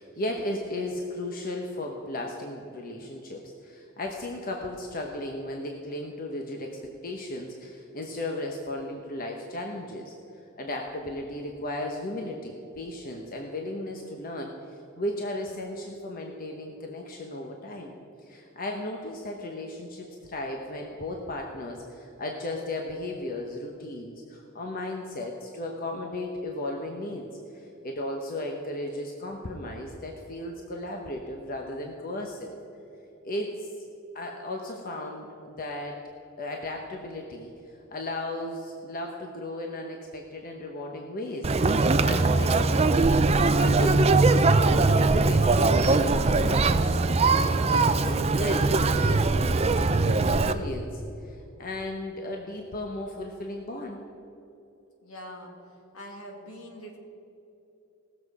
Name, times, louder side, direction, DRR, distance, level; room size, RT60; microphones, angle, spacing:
voice 1, 0.0-10.1 10.6-17.9 18.2-27.3 27.5-32.5 33.2-33.7 34.1-36.0 36.4-41.5 42.0-42.9 43.6-47.0 47.6-49.6 49.9-54.0, left 1 dB, 45° left, 1 dB, 1.0 m, -35 dB
Conversation, 41.4-50.5, right 3 dB, 30° right, 0.5 m, -21 dB
voice 2, 55.0-55.5 55.9-57.0, equal, 75° left, 0 dB, 2.2 m, -43 dB
18.5 x 7.3 x 4.8 m, 2.9 s
head